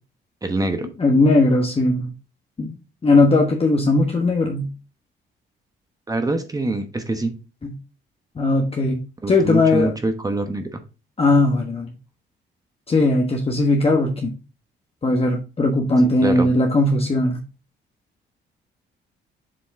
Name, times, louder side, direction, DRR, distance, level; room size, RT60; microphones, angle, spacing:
voice 1, 0.4-0.9 6.1-7.3 9.2-10.8 16.2-16.5, right 2 dB, 20° right, 7 dB, 0.9 m, -24 dB
voice 2, 1.0-2.1 2.6-2.7 3.0-4.7 7.6-7.7 8.3-9.0 9.3-9.9 11.2-11.9 12.9-14.3 15.0-17.4, left 2 dB, 30° left, 1 dB, 1.2 m, -18 dB
7.5 x 4.2 x 3.4 m, 0.31 s
cardioid pair, 90°, 20 cm